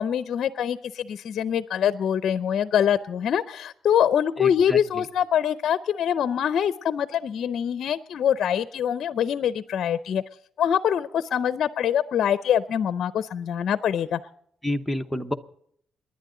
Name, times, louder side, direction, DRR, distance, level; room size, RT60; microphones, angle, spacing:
voice 1, 0.0-10.2 10.6-14.2, left 9 dB, 55° left, 13 dB, 0.6 m, -24 dB
voice 2, 4.4-5.1 14.6-15.3, left 1 dB, 5° left, 5 dB, 0.8 m, -29 dB
29.0 x 11.0 x 3.8 m, 0.68 s
cardioid pair, 160°, 0 cm